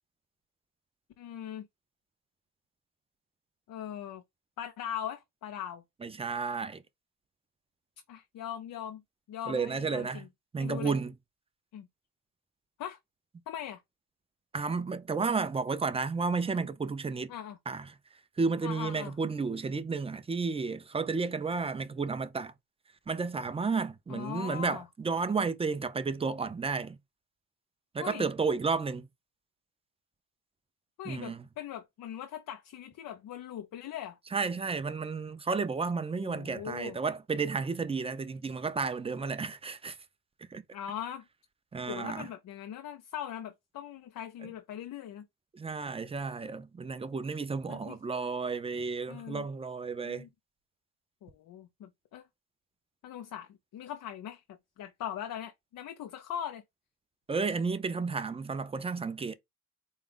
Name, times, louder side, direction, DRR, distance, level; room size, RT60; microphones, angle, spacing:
voice 1, 1.2-1.7 3.7-4.2 4.6-5.8 8.1-9.0 9.3-10.3 10.6-11.0 11.7-11.9 12.8-13.0 13.5-13.8 17.3-17.6 18.6-19.2 24.1-24.9 28.0-28.3 31.0-34.2 36.2-37.0 40.7-41.2 41.9-45.3 47.7-48.0 49.1-49.5 50.0-50.3 51.2-52.3 53.0-56.6, left 10 dB, 60° left, 0.6 m, -40 dB
voice 2, 6.0-6.8 9.5-10.2 10.5-11.1 14.5-17.3 17.7-17.9 18.4-22.5 23.1-27.0 27.9-29.1 31.0-31.4 34.3-40.0 40.5-40.6 41.7-42.3 44.4-44.5 45.5-50.2 57.3-59.3, right 4 dB, 15° right, 0.5 m, -32 dB
4.2 x 2.4 x 3.7 m
cardioid pair, 90°, 37 cm